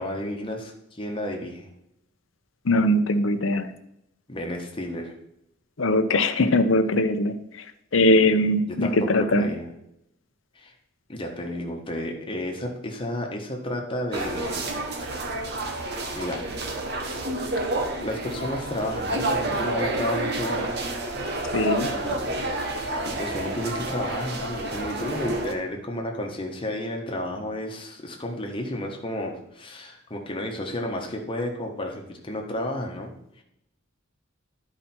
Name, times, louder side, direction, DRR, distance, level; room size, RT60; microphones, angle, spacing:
voice 1, 0.0-1.7 4.3-5.1 8.7-9.7 10.5-10.7 11.1-15.2 16.1-16.4 18.0-20.9 21.9-22.6 23.0-33.1 33.4-33.5, left 1 dB, 25° left, 1 dB, 1.3 m, -32 dB
voice 2, 2.7-3.7 5.8-7.4 7.9-9.5 21.5-21.9, left 1 dB, 70° left, 9 dB, 0.8 m, -21 dB
sound 1, 14.1-25.5, right 2 dB, 50° right, 1.1 m, -29 dB
11.0 x 5.0 x 4.4 m, 0.81 s
head